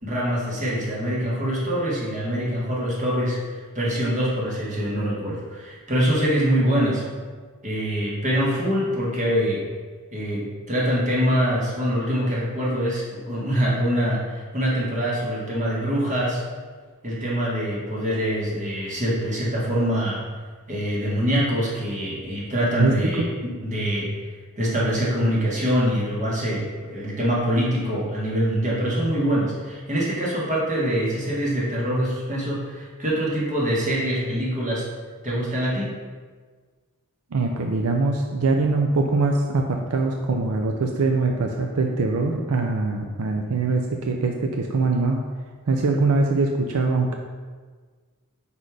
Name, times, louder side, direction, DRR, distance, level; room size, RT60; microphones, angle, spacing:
voice 1, 0.0-3.4 3.7-7.0 7.6-9.6 10.1-16.4 17.0-20.2 20.7-24.1 24.6-34.9 35.2-35.9, equal, 35° right, -5 dB, 1.6 m, -24 dB
voice 2, 37.3-45.2 45.7-47.2, right 3 dB, 75° right, 2 dB, 0.5 m, -22 dB
5.4 x 4.2 x 4.8 m, 1.5 s
head